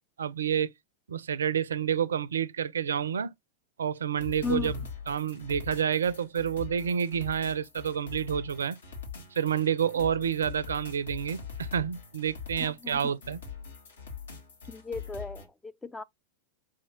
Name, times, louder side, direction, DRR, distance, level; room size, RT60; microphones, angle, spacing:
voice 1, 0.2-0.7 1.1-3.3 3.8-4.7 5.1-8.8 9.3-13.4, right 8 dB, 70° right, 0.4 m, -29 dB
sound 1, 4.2-15.4, left 5 dB, 70° left, 1.2 m, -42 dB
voice 2, 12.6-13.0 14.7-15.4 15.8-16.0, left 4 dB, 10° left, 0.3 m, -34 dB
4.9 x 2.8 x 2.7 m
figure-of-eight pair, 90°, 0 cm